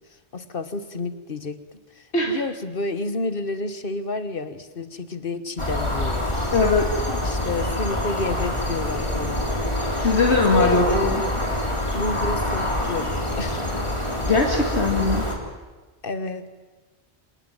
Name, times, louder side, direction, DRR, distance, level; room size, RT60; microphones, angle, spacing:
voice 1, 0.3-1.6 1.9-6.5 7.2-9.4 9.9-10.0 10.3-11.4 11.9-13.7 16.0-16.6, left 3 dB, 55° left, 12 dB, 1.7 m, -30 dB
sound 1, 5.6-15.4, left 1 dB, 25° left, 3.4 m, -26 dB
voice 2, 6.5-7.2 10.0-11.2 14.3-15.3, left 3 dB, 75° left, 2 dB, 2.4 m, -21 dB
26.0 x 19.0 x 9.0 m, 1.3 s
omnidirectional pair, 1.1 m